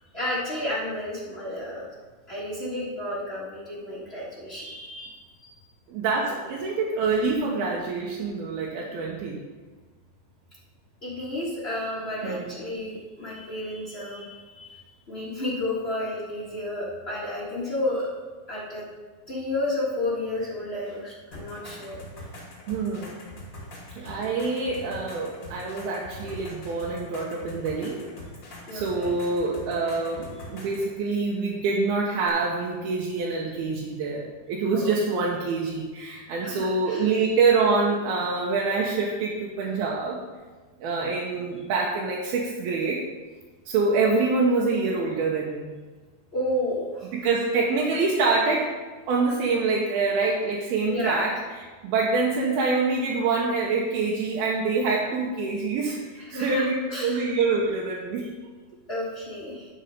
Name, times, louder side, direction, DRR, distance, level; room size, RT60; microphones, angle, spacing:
voice 1, 0.1-1.8 2.3-5.2 11.0-18.1 18.5-18.8 19.3-22.2 28.7-29.1 34.7-34.9 36.4-37.0 46.3-47.1 50.8-51.2 56.3-57.2 58.9-59.7, left 1 dB, 75° left, -8 dB, 0.5 m, -31 dB
voice 2, 5.9-9.4 12.2-12.6 22.7-23.2 24.0-28.0 28.7-40.2 40.8-43.0 43.7-45.7 47.1-48.8 49.1-56.7 57.0-58.3, right 4 dB, 90° right, -3 dB, 2.8 m, -26 dB
sound 1, 21.3-30.9 32.3-32.4, left 1 dB, 40° left, 2.2 m, -43 dB
10.0 x 5.2 x 5.3 m, 1.4 s
omnidirectional pair, 4.2 m